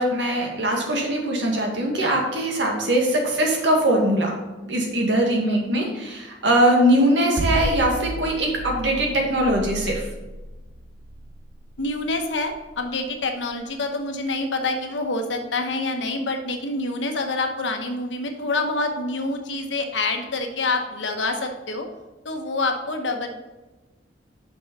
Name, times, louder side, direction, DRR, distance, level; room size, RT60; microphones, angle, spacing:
voice 1, 0.0-4.4 4.6-10.1, right 1 dB, 70° right, 0 dB, 2.1 m, -21 dB
voice 2, 5.4-5.7 6.9-7.0 11.8-21.9 22.2-23.3, left 2 dB, 80° left, 4 dB, 1.1 m, -27 dB
sound 1, 7.4-13.5, right 2 dB, 90° right, 0.7 m, -32 dB
6.2 x 5.8 x 5.6 m, 1.1 s
head